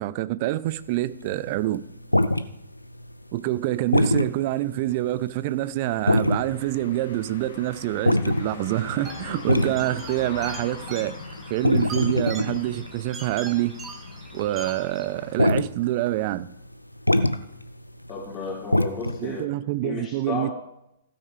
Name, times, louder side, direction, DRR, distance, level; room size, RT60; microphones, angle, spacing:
voice 1, 0.0-1.8 3.3-11.2 11.5-13.8 14.3-16.5 19.2-20.5, right 15 dB, 40° right, 0.5 m, -26 dB
sound 1, 0.7-3.1 3.5-4.3 4.6-4.7 5.0-5.3 5.8-6.6 6.9-13.9 14.1-14.8 15.1-15.7 16.1-16.2 16.4-16.5 16.7-19.3, left 1 dB, 90° left, 0.6 m, -23 dB
sound 2, 5.9-15.4, left 5 dB, 60° left, 1.6 m, -42 dB
sound 3, 9.0-15.1, right 3 dB, 15° right, 1.8 m, -42 dB
voice 2, 18.1-19.5 19.8-20.5, left 4 dB, 20° left, 3.6 m, -33 dB
16.0 x 8.9 x 3.4 m
figure-of-eight pair, 110°, 0 cm